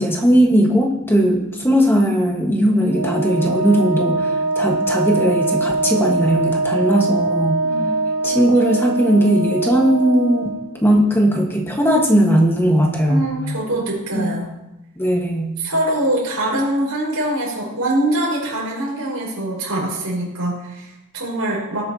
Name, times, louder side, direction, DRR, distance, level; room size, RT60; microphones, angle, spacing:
voice 1, 0.0-7.6 8.2-10.5 10.8-13.3 14.1-14.3 15.0-15.5, equal, 10° left, 0 dB, 1.4 m, -17 dB
Wind instrument woodwind instrument, 2.9-10.7, right 2 dB, 65° right, 1.2 m, -22 dB
voice 2, 7.6-8.0 8.3-8.4 13.1-14.5 15.6-21.8, right 1 dB, 90° right, -3 dB, 5.0 m, -23 dB
19.5 x 8.6 x 2.9 m, 0.94 s
head